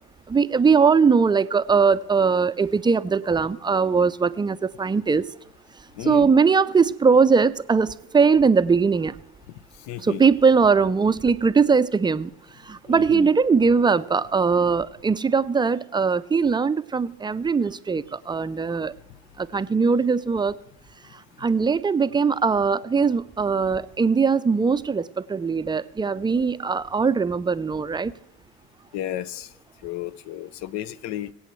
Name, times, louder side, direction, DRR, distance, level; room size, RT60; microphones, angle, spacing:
voice 1, 0.3-5.2 6.0-9.2 10.0-12.3 12.7-18.9 19.4-20.6 21.4-28.1, right 5 dB, 15° right, 0.5 m, -20 dB
voice 2, 5.9-6.3 9.5-10.3 12.9-13.3 21.4-21.5 28.9-29.5 29.8-31.3, left 12 dB, 65° left, 0.7 m, -33 dB
24.0 x 8.4 x 3.1 m
supercardioid pair, 85°, 30 cm